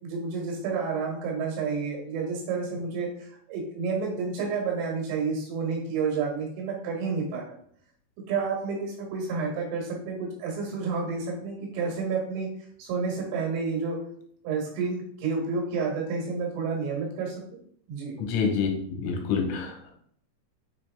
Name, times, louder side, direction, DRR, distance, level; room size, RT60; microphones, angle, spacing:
voice 1, 0.0-7.4 8.3-12.5 12.8-14.0 14.4-17.4 17.9-18.2, right 5 dB, 90° right, -1 dB, 4.3 m, -30 dB
voice 2, 18.2-19.9, left 5 dB, 85° left, 2 dB, 3.5 m, -27 dB
8.2 x 3.3 x 3.5 m, 0.64 s
omnidirectional pair, 5.7 m